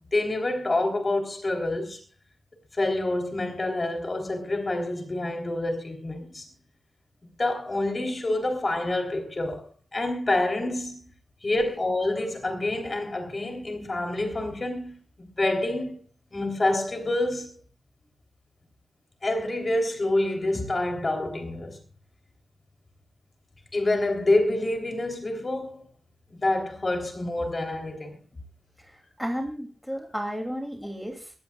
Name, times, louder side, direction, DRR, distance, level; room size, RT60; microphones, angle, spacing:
voice 1, 0.1-2.0 2.8-6.4 7.4-11.0 11.4-16.0 16.3-17.5 19.2-21.8 23.7-25.9 26.4-28.2, left 2 dB, 35° left, 3.4 m, -27 dB
voice 2, 29.2-31.3, equal, ahead, 2.8 m, -33 dB
22.0 x 15.5 x 2.4 m
wide cardioid pair, 125°, 0 cm